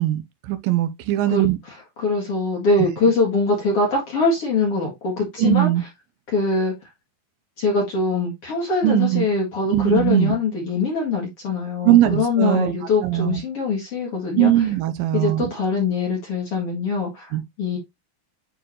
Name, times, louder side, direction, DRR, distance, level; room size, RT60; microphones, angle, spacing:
voice 1, 0.0-1.6 5.4-5.8 8.8-9.3 9.7-10.4 11.8-12.7 13.0-13.4 14.4-15.5 17.3-17.4, right 14 dB, 80° right, 2.3 m, -20 dB
voice 2, 1.3-5.7 6.3-6.7 7.6-14.7 15.1-17.8, left 3 dB, 45° left, 2.2 m, -23 dB
9.1 x 3.9 x 3.0 m
omnidirectional pair, 4.3 m